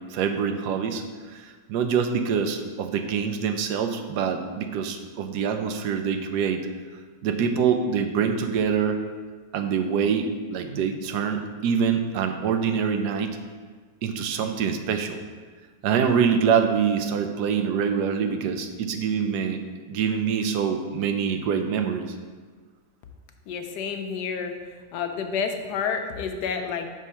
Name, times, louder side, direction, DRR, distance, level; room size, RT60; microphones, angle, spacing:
voice 1, 0.1-6.7 7.2-9.0 9.5-13.4 14.0-15.2 15.8-19.6 19.9-22.1, right 6 dB, 85° right, 6 dB, 1.2 m, -25 dB
voice 2, 23.5-24.5 24.9-26.9, left 6 dB, 85° left, 5 dB, 1.2 m, -29 dB
6.3 x 3.6 x 5.5 m, 1.4 s
omnidirectional pair, 1.7 m